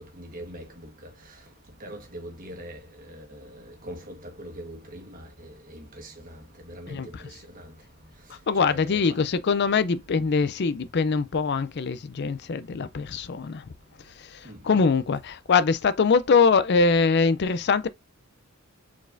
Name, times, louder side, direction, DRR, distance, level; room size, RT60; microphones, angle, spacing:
voice 1, 0.2-0.6 1.8-2.8 3.1-3.2 3.9-6.3 6.7-7.0 8.6-9.2 14.4-14.6, equal, 40° right, 1.3 m, -41 dB
voice 2, 8.5-13.6 14.3-14.4 14.6-17.9, left 5 dB, 50° left, 0.4 m, -23 dB
4.9 x 4.1 x 2.6 m
head